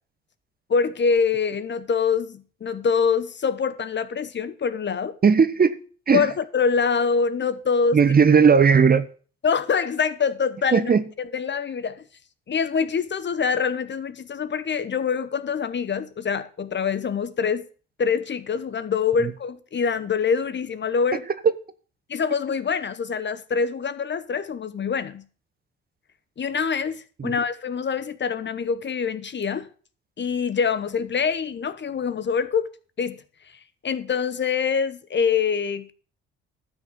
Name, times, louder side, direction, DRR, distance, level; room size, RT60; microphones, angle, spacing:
voice 1, 0.7-5.2 6.1-8.0 9.4-12.0 12.5-17.7 18.0-21.2 22.1-25.2 26.4-29.7 30.2-32.7 33.0-33.2 33.8-35.9, left 6 dB, 35° left, 1.0 m, -25 dB
voice 2, 5.2-5.8 6.1-6.3 7.9-9.1 10.7-11.0 19.2-19.3 27.2-27.3, right 6 dB, 30° right, 1.1 m, -17 dB
12.5 x 6.2 x 6.1 m
hypercardioid pair, 50°, 31 cm